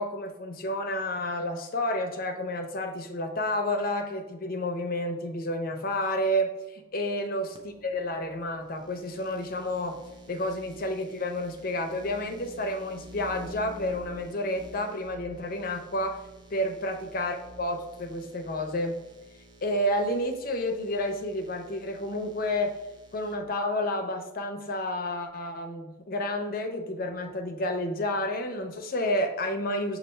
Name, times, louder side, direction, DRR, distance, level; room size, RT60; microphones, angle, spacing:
voice 1, 0.0-10.0 10.3-16.2 16.5-19.0 19.6-22.7 23.1-30.0, left 1 dB, 45° left, 5 dB, 0.5 m, -30 dB
sound 1, 7.5-23.3, right 1 dB, 20° right, 0.4 m, -50 dB
6.5 x 2.5 x 3.2 m, 1.0 s
head